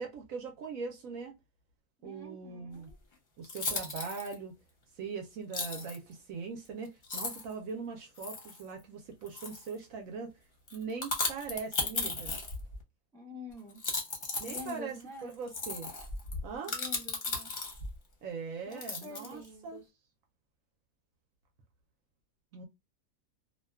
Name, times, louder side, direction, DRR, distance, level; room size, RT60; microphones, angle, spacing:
voice 1, 0.0-1.3 2.0-2.9 3.4-4.5 4.9-10.3 10.7-12.4 14.4-14.9 15.2-15.9 16.4-16.7 18.2-19.8 22.5-22.6, right 5 dB, 65° right, 0.9 m, -41 dB
voice 2, 2.0-3.0 13.1-13.8 14.4-15.4 16.7-17.5 18.7-19.8, left 2 dB, 5° left, 0.3 m, -47 dB
sound 1, 2.9-3.0 3.4-4.3 5.5-6.0 6.7-6.8 7.0-7.5 8.2-8.6 9.3-9.8 10.7-12.8 13.7-18.0 18.7-19.5, left 3 dB, 45° left, 0.7 m, -36 dB
2.7 x 2.2 x 2.2 m
omnidirectional pair, 1.8 m